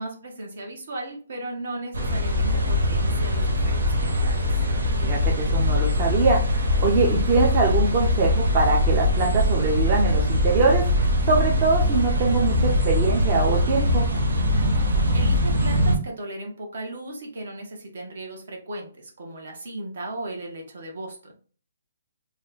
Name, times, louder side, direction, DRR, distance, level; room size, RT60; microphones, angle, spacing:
voice 1, 0.0-4.6 14.9-21.3, right 1 dB, 60° right, 1 dB, 1.1 m, -36 dB
sound 1, 1.9-16.0, left 1 dB, 85° right, 1.0 m, -22 dB
voice 2, 5.0-14.1, right 3 dB, 25° right, -2 dB, 0.6 m, -23 dB
3.1 x 2.3 x 3.9 m, 0.42 s
hypercardioid pair, 165°, 0 cm